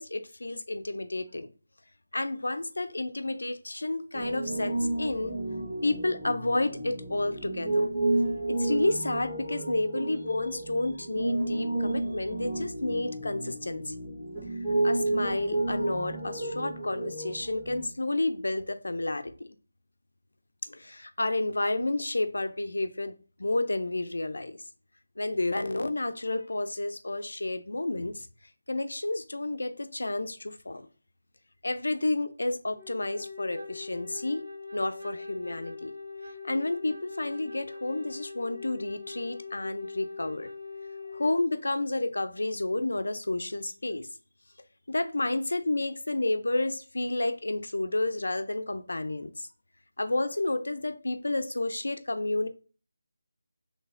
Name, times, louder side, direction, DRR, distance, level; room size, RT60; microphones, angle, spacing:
voice 1, 0.0-1.5 2.1-5.4 5.8-7.8 8.5-13.9 14.8-19.6 20.7-23.1 23.4-24.6 25.2-28.3 28.7-30.9 31.6-34.4 34.7-35.9 36.4-40.5 41.1-44.1 44.9-49.5 50.0-52.5, left 2 dB, 80° left, 0.5 m, -30 dB
Piano, 4.1-17.8, right 2 dB, 5° right, 1.0 m, -31 dB
Wind instrument woodwind instrument, 32.7-41.4, left 4 dB, 60° right, 1.3 m, -42 dB
3.9 x 3.3 x 2.5 m
figure-of-eight pair, 170°, 0 cm